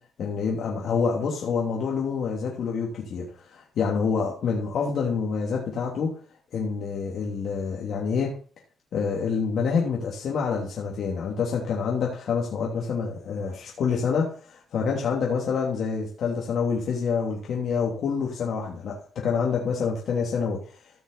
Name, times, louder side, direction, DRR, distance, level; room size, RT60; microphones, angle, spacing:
voice 1, 0.2-3.2 3.5-6.1 6.5-8.4 8.9-20.6, left 5 dB, 65° left, -2 dB, 3.0 m, -27 dB
15.0 x 6.3 x 4.1 m, 0.42 s
cardioid pair, 90°, 0 cm